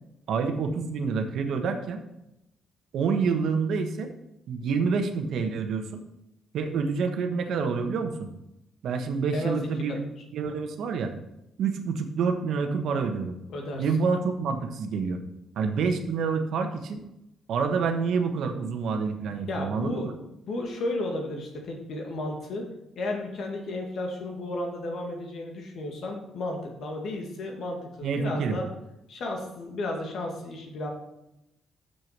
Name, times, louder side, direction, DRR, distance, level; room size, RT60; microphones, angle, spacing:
voice 1, 0.3-2.0 2.9-4.1 4.5-6.0 6.5-8.3 8.8-10.0 10.3-11.1 11.6-13.3 13.8-15.2 15.6-17.0 17.5-20.1 28.0-28.6, right 5 dB, 75° right, 6 dB, 1.2 m, -27 dB
voice 2, 9.3-10.0 13.5-13.8 19.5-20.1 20.5-22.6 23.0-28.7 29.1-30.9, left 2 dB, 65° left, 1 dB, 2.2 m, -33 dB
7.0 x 6.3 x 6.0 m, 0.87 s
cardioid pair, 90°, 0 cm